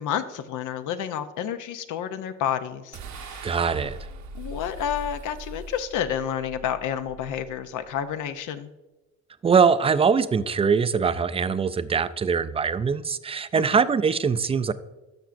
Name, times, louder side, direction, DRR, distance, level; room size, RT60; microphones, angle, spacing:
voice 1, 0.0-3.5 4.3-8.7 13.6-13.7, left 9 dB, 80° left, 0.6 m, -30 dB
sound 1, 2.9-8.3, right 2 dB, 70° right, 0.9 m, -41 dB
voice 2, 3.4-4.0 9.4-14.7, right 6 dB, 20° right, 0.3 m, -22 dB
13.0 x 5.9 x 2.5 m
cardioid pair, 90°, 30 cm